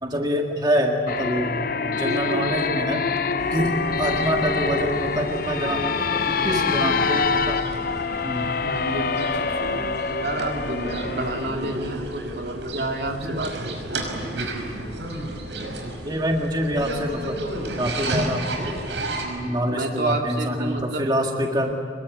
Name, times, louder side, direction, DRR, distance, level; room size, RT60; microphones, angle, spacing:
voice 1, 0.0-3.0 3.5-7.6 8.2-8.5 16.1-17.4 17.8-18.7 19.4-21.7, equal, 25° right, 1 dB, 1.9 m, -25 dB
sound 1, 1.1-11.5, left 5 dB, 50° left, 0.7 m, -26 dB
voice 2, 2.0-2.5 6.3-6.8 8.6-14.0 19.2-21.1, right 1 dB, 60° right, 2 dB, 3.1 m, -30 dB
sound 2, 3.4-19.2, right 1 dB, 90° right, 5.6 m, -33 dB
26.0 x 22.5 x 9.3 m, 2.3 s
head